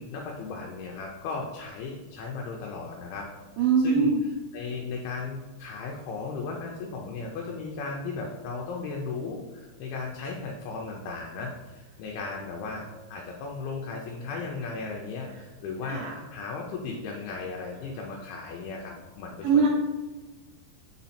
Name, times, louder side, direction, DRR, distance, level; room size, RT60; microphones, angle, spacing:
voice 1, 0.0-3.3 3.6-4.1 4.5-19.7, left 4 dB, 80° left, -1 dB, 2.5 m, -36 dB
voice 2, 3.6-4.2 15.8-16.2 19.4-19.7, right 5 dB, 85° right, 1 dB, 2.1 m, -22 dB
6.3 x 4.2 x 4.2 m, 1.2 s
omnidirectional pair, 4.8 m